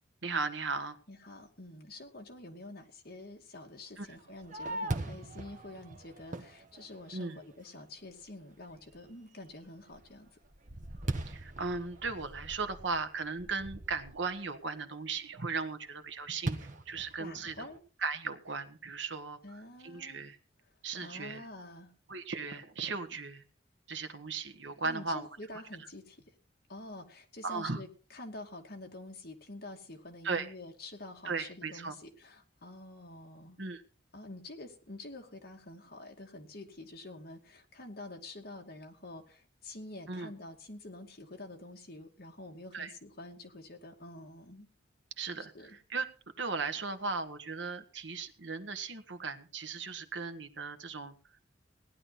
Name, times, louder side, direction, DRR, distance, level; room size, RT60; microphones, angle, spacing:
voice 1, 0.2-1.0 4.0-4.2 7.1-7.4 11.3-17.7 18.0-20.4 20.8-21.5 22.1-23.4 23.9-25.3 25.8-25.9 27.4-27.8 30.2-30.5 31.2-32.0 33.6-33.8 40.1-40.3 42.7-42.9 45.2-46.1 46.4-51.1, right 4 dB, 70° right, 10 dB, 1.4 m, -37 dB
voice 2, 1.1-10.3 17.2-17.8 19.4-20.3 21.0-21.9 24.8-26.2 26.7-27.9 28.1-33.6 34.1-44.7 45.4-45.7, left 2 dB, 50° left, 2 dB, 2.5 m, -47 dB
Fireworks, 4.0-7.5 8.1-8.2 8.7-9.1 9.5-14.4 16.5-17.8, right 2 dB, 40° right, 1.2 m, -41 dB
18.0 x 11.0 x 4.3 m, 0.38 s
head